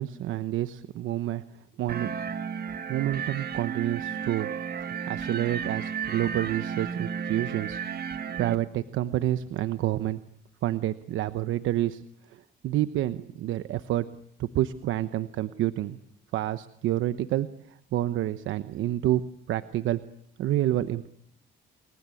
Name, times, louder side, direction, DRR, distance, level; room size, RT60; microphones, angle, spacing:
voice 1, 0.0-1.4 1.8-2.1 2.9-4.5 4.8-7.8 8.1-10.2 10.6-12.0 12.3-14.1 14.4-16.0 16.3-20.0 20.4-21.1, right 13 dB, 85° right, 12 dB, 1.0 m, -28 dB
sound 1, 1.9-8.6, right 7 dB, 50° right, 1.8 m, -33 dB
28.5 x 22.0 x 8.5 m, 0.71 s
cardioid pair, 90°, 20 cm